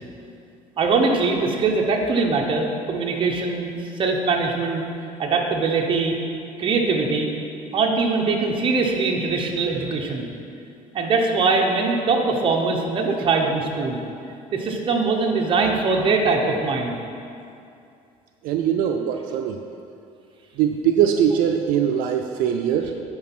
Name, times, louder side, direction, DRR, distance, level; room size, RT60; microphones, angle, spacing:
voice 1, 0.8-4.8 5.2-6.1 6.6-7.3 7.7-10.3 10.9-14.0 14.5-17.0, right 4 dB, 35° right, 0 dB, 1.0 m, -22 dB
voice 2, 18.4-19.6 20.6-22.9, right 9 dB, 75° right, 4 dB, 0.5 m, -21 dB
10.0 x 4.0 x 6.1 m, 2.5 s
cardioid pair, 130°, 15 cm